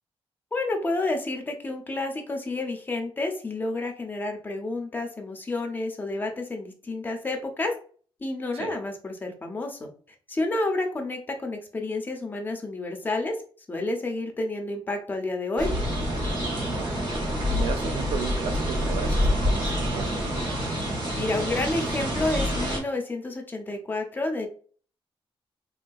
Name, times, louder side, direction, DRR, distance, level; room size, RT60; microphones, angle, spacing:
voice 1, 0.5-7.8 8.2-9.9 10.3-13.4 13.7-15.7 21.1-24.5, left 2 dB, 20° left, 3 dB, 0.5 m, -30 dB
sound 1, 15.6-22.8, equal, 50° right, 1.0 m, -27 dB
voice 2, 16.6-16.9 17.5-20.4, right 6 dB, 85° right, 8 dB, 0.5 m, -35 dB
3.6 x 2.6 x 2.3 m, 0.43 s
wide cardioid pair, 175°, 10 cm